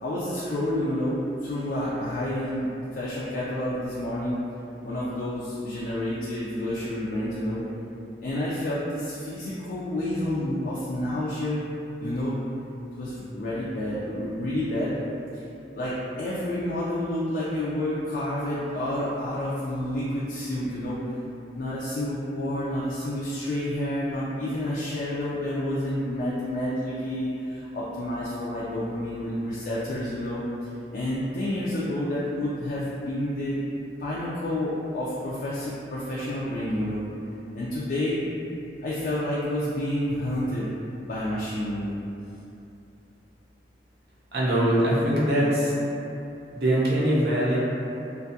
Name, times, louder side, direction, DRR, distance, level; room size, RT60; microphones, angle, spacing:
voice 1, 0.0-2.7 2.9-4.4 4.8-7.6 8.2-11.7 12.0-12.4 13.0-15.0 15.8-21.0 21.5-30.4 30.9-33.6 34.0-37.0 37.5-38.2 38.8-40.7 41.1-41.9, left 1 dB, 50° left, -8 dB, 0.3 m, -29 dB
voice 2, 44.3-45.8 46.5-47.6, right 1 dB, 60° right, -6 dB, 0.6 m, -22 dB
2.5 x 2.3 x 2.6 m, 2.8 s
head